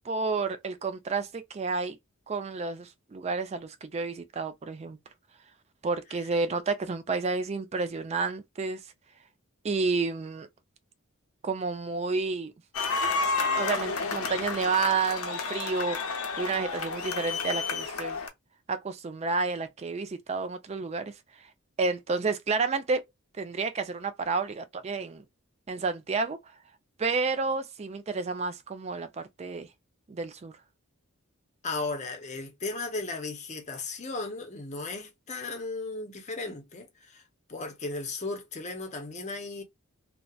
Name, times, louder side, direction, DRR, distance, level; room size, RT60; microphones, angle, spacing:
voice 1, 0.1-2.0 2.3-5.0 5.8-8.8 9.6-10.5 11.4-12.5 13.6-18.2 18.7-21.1 21.8-23.0 23.4-25.2 25.7-26.4 27.0-29.7 30.1-30.5, right 4 dB, 30° right, 0.3 m, -30 dB
sound 1, 12.7-18.3, left 4 dB, 80° left, 0.6 m, -31 dB
voice 2, 31.6-37.2 37.5-39.6, left 3 dB, 35° left, 0.6 m, -36 dB
2.7 x 2.1 x 2.3 m
head